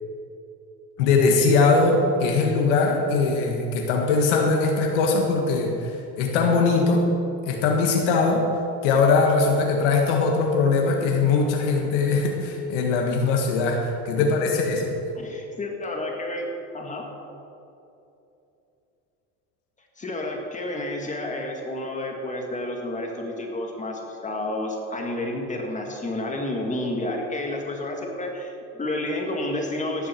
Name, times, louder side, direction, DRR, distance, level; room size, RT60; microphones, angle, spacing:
voice 1, 1.0-7.1 7.4-8.4 8.8-14.8, left 4 dB, 85° left, 1 dB, 1.8 m, -21 dB
voice 2, 15.1-16.5 16.7-17.1 20.0-30.1, left 1 dB, 20° left, 1 dB, 2.2 m, -30 dB
15.0 x 11.5 x 4.6 m, 2.8 s
supercardioid pair, 110°, 35 cm